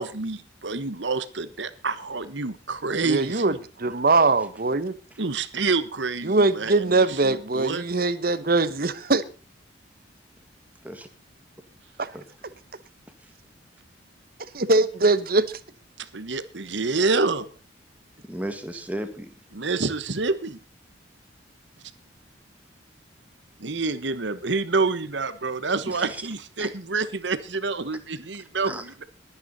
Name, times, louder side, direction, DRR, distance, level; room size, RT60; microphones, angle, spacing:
voice 1, 0.0-3.6 5.2-7.8 16.0-17.5 19.5-20.6 23.6-29.0, right 3 dB, 70° right, 1.2 m, -28 dB
voice 2, 3.0-5.0 6.2-9.2 12.0-12.1 14.5-15.6, right 3 dB, 50° right, 1.0 m, -22 dB
voice 3, 18.3-19.3 25.9-26.2 26.6-26.7 28.4-28.8, right 1 dB, 10° right, 1.8 m, -35 dB
21.5 x 9.6 x 4.1 m
head